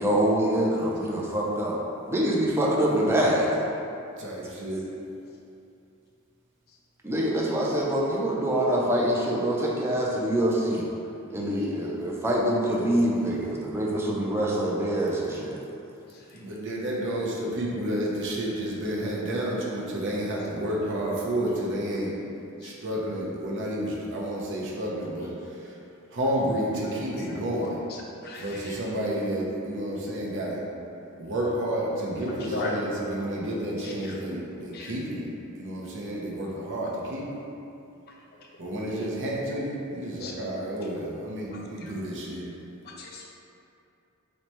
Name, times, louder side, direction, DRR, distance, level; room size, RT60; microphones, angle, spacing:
voice 1, 0.0-1.8 2.1-3.5 7.0-10.9 11.3-15.6, right 1 dB, 10° right, -4 dB, 0.4 m, -25 dB
voice 2, 4.2-4.9 16.3-22.1 22.6-25.8 26.1-27.8 28.4-30.6 31.2-35.3 35.5-37.4 38.6-42.5, right 1 dB, 60° right, -3 dB, 0.6 m, -30 dB
voice 3, 27.3-27.7 28.2-28.7 32.3-32.9 33.2-33.3 33.8-33.9 34.7-34.9 40.2-40.3 43.0-43.3, left 2 dB, 50° left, -2 dB, 0.4 m, -35 dB
3.0 x 2.1 x 4.1 m, 2.7 s
head